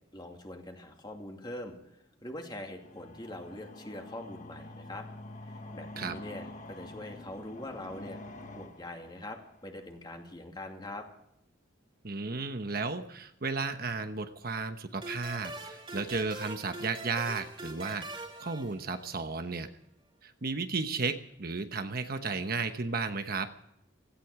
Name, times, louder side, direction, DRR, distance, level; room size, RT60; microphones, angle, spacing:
voice 1, 0.1-5.1 5.4-8.2 8.5-11.1, left 1 dB, 25° left, 2 dB, 2.5 m, -43 dB
sound 1, 2.8-9.8, left 1 dB, 40° left, 1.4 m, -47 dB
voice 2, 12.0-19.7 20.2-23.5, right 4 dB, 50° right, 8 dB, 1.0 m, -34 dB
sound 2, 15.0-19.4, right 2 dB, 30° right, 2.7 m, -43 dB
17.0 x 15.0 x 4.8 m, 0.77 s
head